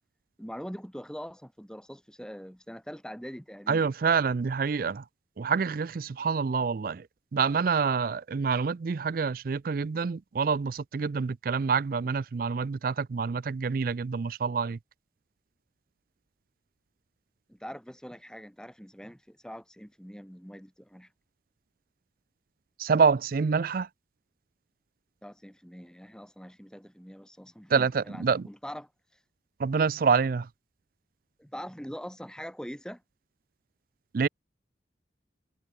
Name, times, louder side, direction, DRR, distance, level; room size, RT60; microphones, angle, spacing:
voice 1, 0.4-3.9 17.5-21.1 25.2-28.9 31.4-33.0, equal, 5° left, 7.5 m, -43 dB
voice 2, 3.7-5.0 5.4-7.1 7.3-14.8 22.8-23.9 27.7-28.5 29.6-30.5 34.1-34.3, right 5 dB, 50° right, 0.4 m, -27 dB
head